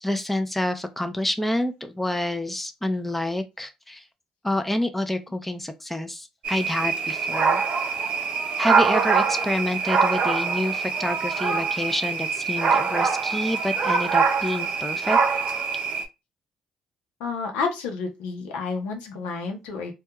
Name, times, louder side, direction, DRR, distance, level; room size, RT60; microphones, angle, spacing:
voice 1, 0.0-4.0 4.4-7.6 8.6-15.2, left 1 dB, 10° left, 0.5 m, -28 dB
sound 1, 6.4-16.1, right 5 dB, 60° right, 0.5 m, -24 dB
voice 2, 17.2-19.9, left 4 dB, 90° left, 0.7 m, -30 dB
2.3 x 2.2 x 2.9 m
supercardioid pair, 65°, 2 cm